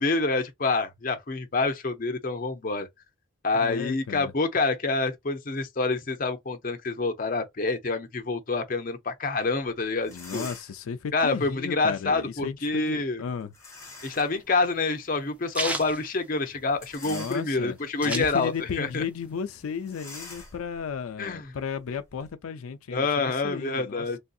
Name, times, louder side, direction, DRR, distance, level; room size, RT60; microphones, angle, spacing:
voice 1, 0.0-2.9 3.4-10.5 11.1-13.2 14.0-19.0 21.2-21.5 22.9-24.2, left 3 dB, 40° left, 0.6 m, -27 dB
voice 2, 3.6-4.3 10.1-13.5 17.0-17.8 18.0-24.1, left 6 dB, 85° left, 0.4 m, -34 dB
sound 1, 9.6-9.7 10.0-10.9 13.5-14.4 14.9-15.0 16.7-17.8 18.4-18.6 18.8-19.0 19.9-22.3, left 3 dB, 15° left, 1.1 m, -45 dB
sound 2, 13.8-17.0 17.3-17.4 17.6-18.9 19.2-20.3, right 1 dB, 5° right, 0.4 m, -34 dB
3.4 x 2.6 x 2.3 m
head